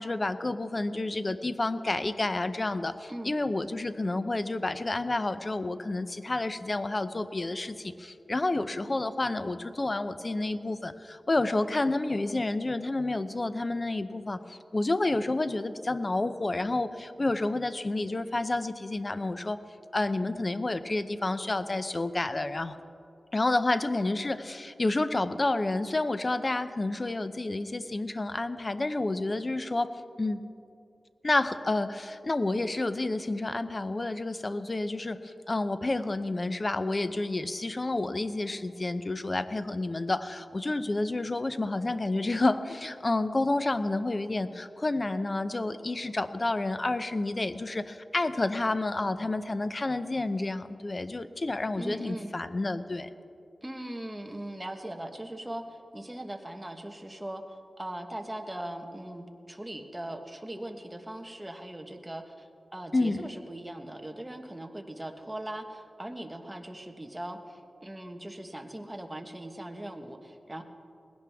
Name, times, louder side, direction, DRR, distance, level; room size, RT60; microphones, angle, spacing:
voice 1, 0.0-19.6 19.9-22.8 23.3-30.4 31.2-53.1 62.9-63.2, left 2 dB, 35° left, 11 dB, 0.6 m, -30 dB
voice 2, 51.8-52.3 53.6-70.6, right 1 dB, 15° right, 5 dB, 1.3 m, -40 dB
19.5 x 17.0 x 3.5 m, 2.6 s
wide cardioid pair, 80°, 0 cm